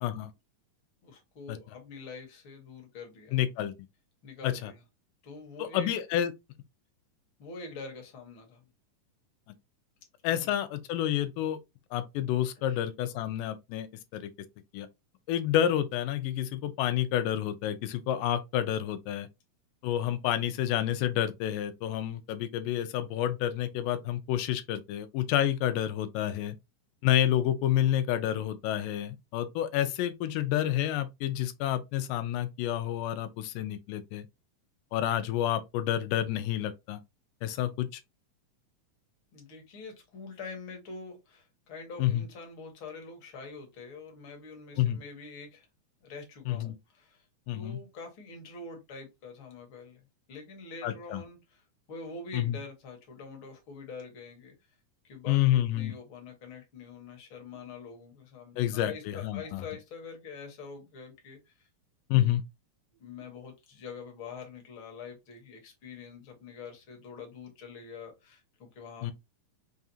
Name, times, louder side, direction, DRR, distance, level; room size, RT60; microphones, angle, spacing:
voice 1, 1.0-3.4 4.2-4.8 5.2-5.9 7.4-8.6 10.3-10.5 12.5-12.9 39.3-45.7 46.0-47.2 47.5-50.0 50.3-51.6 51.9-54.5 55.0-61.7 62.9-69.1, left 4 dB, 55° left, 1.4 m, -45 dB
voice 2, 3.3-3.7 4.4-4.7 5.6-6.3 10.2-11.6 11.9-13.9 14.1-14.3 14.7-14.9 15.3-19.3 19.8-26.6 27.0-34.3 34.9-37.0 37.4-38.0 42.0-42.2 44.8-45.0 46.5-46.8 47.5-47.8 50.8-51.2 52.3-52.6 55.3-55.9 58.6-59.6 62.1-62.4 69.0-69.1, left 11 dB, 85° left, 2.1 m, -29 dB
5.6 x 2.4 x 2.7 m
omnidirectional pair, 3.8 m